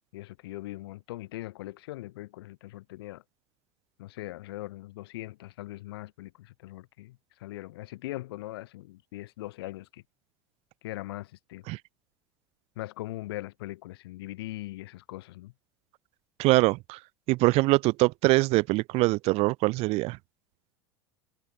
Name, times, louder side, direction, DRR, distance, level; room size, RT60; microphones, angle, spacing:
voice 1, 0.1-3.2 4.0-10.0 10.8-11.7 12.8-15.5, left 17 dB, 80° left, 2.9 m, -40 dB
voice 2, 16.4-17.0 17.3-20.2, right 22 dB, 55° right, 0.4 m, -23 dB
hypercardioid pair, 100°, 13 cm